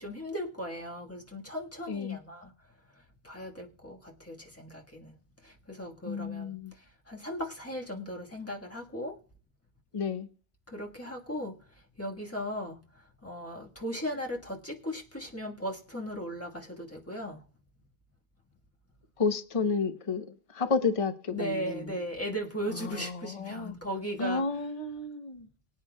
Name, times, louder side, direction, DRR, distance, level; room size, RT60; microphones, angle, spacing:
voice 1, 0.0-2.5 2.9-5.2 5.4-9.2 10.7-17.4 21.3-24.4, equal, 15° left, 1.5 m, -37 dB
voice 2, 1.9-2.2 6.0-6.7 9.9-10.3 19.2-20.3 20.5-22.0 22.7-23.8 24.2-25.5, left 4 dB, 35° left, 0.9 m, -31 dB
23.0 x 8.7 x 2.3 m
omnidirectional pair, 1.1 m